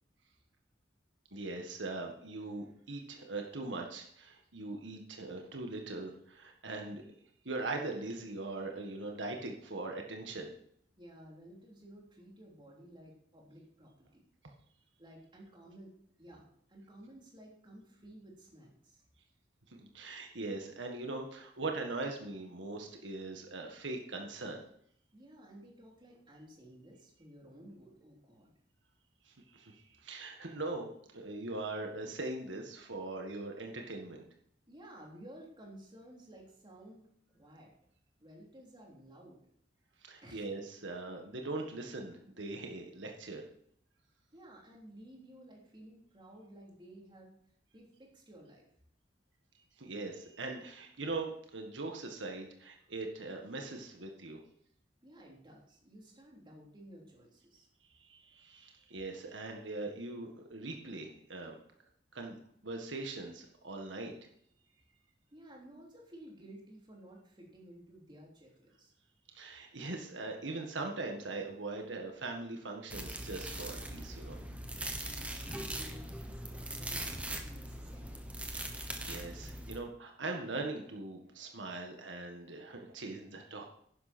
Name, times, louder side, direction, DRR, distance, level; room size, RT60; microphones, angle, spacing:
voice 1, 1.3-7.0 7.5-10.5 19.7-24.6 29.3-30.9 31.1-34.2 40.0-43.4 49.8-54.4 58.0-61.6 62.1-64.1 69.3-74.4 78.5-83.7, right 2 dB, 90° right, 2 dB, 1.7 m, -41 dB
voice 2, 11.0-14.2 15.0-19.0 25.1-28.5 34.7-37.1 37.3-37.7 38.2-39.4 40.2-40.5 44.3-47.3 47.7-48.7 55.0-57.7 65.3-68.9 74.9-78.1, right 1 dB, 25° right, -2 dB, 3.5 m, -54 dB
sound 1, 72.9-79.8, right 1 dB, 5° right, 1.2 m, -41 dB
11.5 x 10.5 x 4.4 m, 0.68 s
head